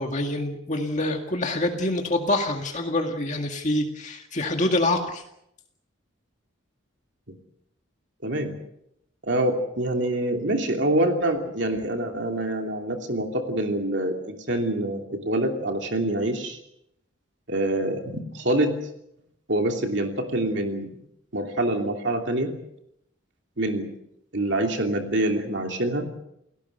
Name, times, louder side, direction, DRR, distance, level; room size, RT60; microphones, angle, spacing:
voice 1, 0.0-5.2, left 1 dB, 35° left, 3 dB, 2.0 m, -26 dB
voice 2, 8.2-8.6 9.2-16.6 17.5-18.7 19.5-20.9 21.3-22.5 23.6-23.9 24.3-26.1, right 1 dB, 60° right, 3 dB, 2.9 m, -25 dB
30.0 x 17.5 x 6.7 m, 0.80 s
head